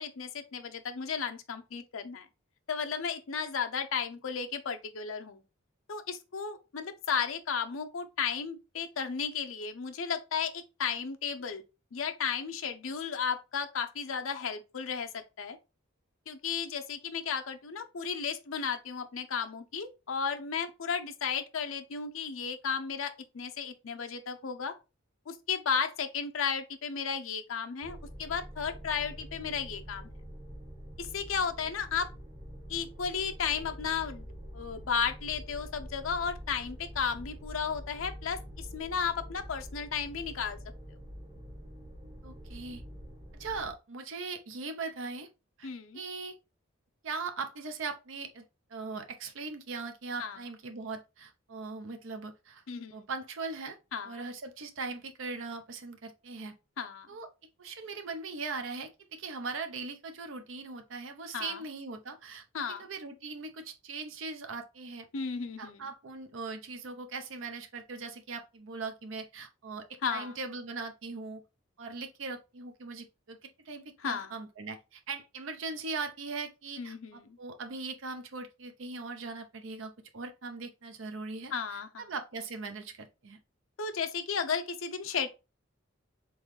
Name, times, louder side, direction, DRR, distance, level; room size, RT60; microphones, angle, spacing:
voice 1, 0.0-2.3 2.7-5.4 5.9-11.6 11.9-15.6 16.3-24.7 25.3-30.1 31.0-32.1 32.7-34.3 34.5-40.6 45.6-46.0 50.2-50.4 52.7-52.9 53.9-54.2 56.8-57.1 61.3-61.6 62.5-62.8 65.1-65.8 70.0-70.3 74.0-74.3 76.8-77.4 81.5-82.1 83.8-85.3, left 6 dB, 85° left, 0.6 m, -34 dB
sound 1, 27.8-43.7, equal, 20° right, 1.0 m, -46 dB
voice 2, 42.2-42.8 43.4-45.3 45.6-45.7 45.9-46.3 47.0-48.4 48.7-52.6 52.9-53.8 54.0-56.5 57.1-57.3 57.6-65.0 65.6-71.4 71.8-73.4 73.7-83.4, right 4 dB, 75° right, 0.6 m, -40 dB
3.8 x 3.6 x 3.1 m
head